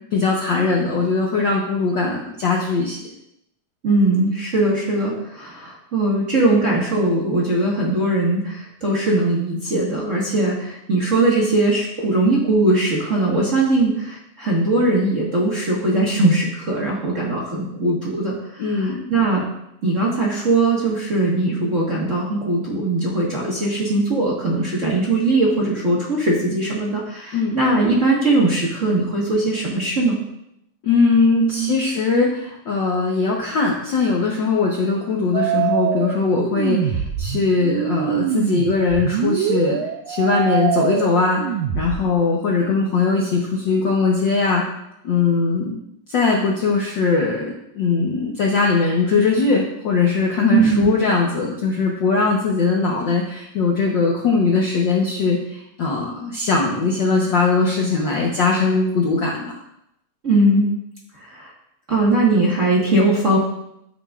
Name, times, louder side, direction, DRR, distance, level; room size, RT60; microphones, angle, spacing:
voice 1, 0.1-3.0 18.6-19.0 27.3-27.5 30.8-39.8 40.1-41.4 41.7-44.6 45.0-45.8 46.1-59.6, left 4 dB, 90° left, -2 dB, 1.0 m, -20 dB
voice 2, 3.8-19.4 19.8-30.1 31.5-31.8 50.5-50.9 60.2-60.7 61.2-61.5 61.9-63.4, right 2 dB, 40° right, -5 dB, 1.1 m, -20 dB
sound 1, 35.3-42.0, right 9 dB, 85° right, 2.1 m, -24 dB
13.5 x 6.3 x 2.4 m, 0.80 s
omnidirectional pair, 3.4 m